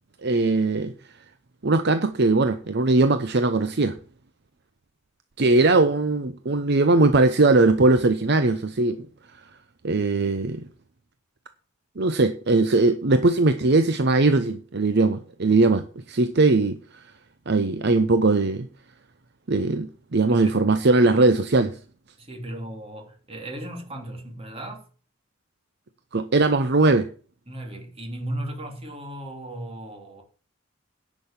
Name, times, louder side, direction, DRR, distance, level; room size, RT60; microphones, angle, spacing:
voice 1, 0.2-0.9 1.6-4.0 5.4-9.1 9.8-10.6 12.0-16.8 17.5-18.7 19.5-21.7 26.1-27.1, right 3 dB, 55° right, 0.7 m, -20 dB
voice 2, 20.3-20.6 21.1-21.3 22.2-24.9 27.5-30.2, right 1 dB, 30° right, 3.1 m, -36 dB
10.5 x 6.3 x 7.2 m
head